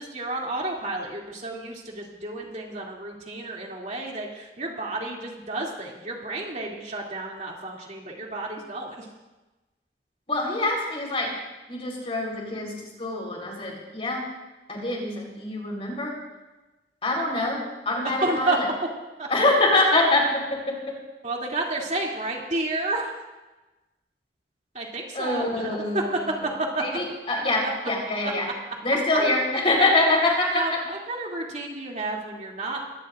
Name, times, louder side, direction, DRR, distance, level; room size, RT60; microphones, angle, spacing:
voice 1, 0.0-9.1 17.4-17.5 18.2-18.6 19.2-19.3 21.2-23.2 24.7-26.0 26.4-26.8 30.5-32.8, right 2 dB, 40° right, -2 dB, 2.8 m, -31 dB
voice 2, 10.3-11.3 11.7-14.3 14.7-16.1 17.0-17.6 17.9-18.7 19.3-21.0 25.1-26.3 26.8-28.5 28.8-30.8, left 2 dB, 35° left, -1 dB, 4.1 m, -24 dB
23.0 x 17.5 x 2.6 m, 1.1 s
head